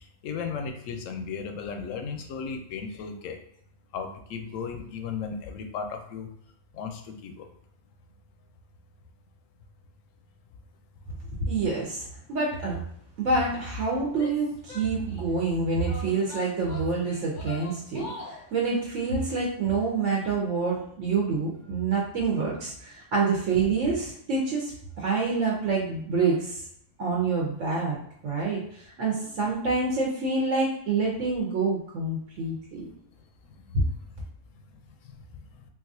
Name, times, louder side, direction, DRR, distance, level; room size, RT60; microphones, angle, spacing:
voice 1, 0.0-3.4 3.9-6.3 6.7-7.4 32.8-32.9 33.7-33.8 35.0-35.4, left 5 dB, 85° left, 5 dB, 0.9 m, -35 dB
voice 2, 11.5-12.8 13.2-26.6 27.0-28.0 28.2-32.9, right 4 dB, 75° right, -3 dB, 1.1 m, -27 dB
Female speech woman speaking / Yell, 14.1-15.4 15.8-18.5, left 2 dB, 55° left, 0.5 m, -42 dB
3.9 x 2.4 x 2.6 m, 0.68 s
omnidirectional pair, 1.3 m